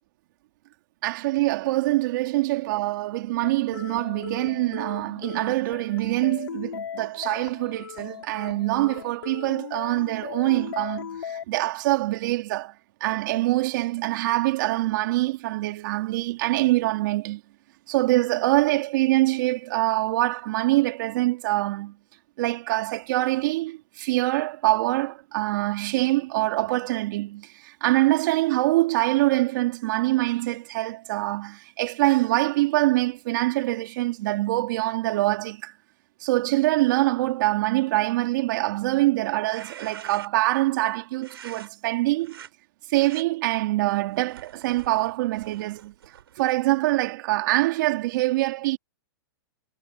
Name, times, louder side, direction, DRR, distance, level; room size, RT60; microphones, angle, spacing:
voice 1, 1.0-17.4 17.9-22.0 22.4-35.7 36.2-42.4 42.9-45.9 46.4-48.8, right 18 dB, 55° right, 3.8 m, -24 dB
sound 1, 3.4-11.4, left 8 dB, 90° left, 6.5 m, -38 dB
sound 2, 39.3-40.5 41.2-41.7 42.2-42.5 42.9-43.2 43.9-46.4, right 9 dB, 85° right, 4.8 m, -46 dB
hypercardioid pair, 140°, 12 cm